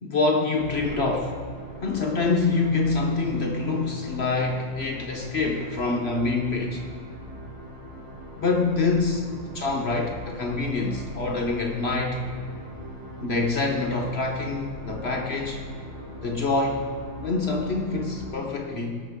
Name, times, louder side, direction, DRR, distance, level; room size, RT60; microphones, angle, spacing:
voice 1, 0.0-1.4 1.8-6.8 8.4-9.2 9.5-12.2 13.2-15.6 16.2-16.9 17.2-19.0, left 3 dB, 60° left, 2 dB, 0.6 m, -26 dB
sound 1, 0.5-18.3, equal, 80° right, 3.3 m, -40 dB
18.5 x 6.3 x 3.6 m, 2.1 s
omnidirectional pair, 2.3 m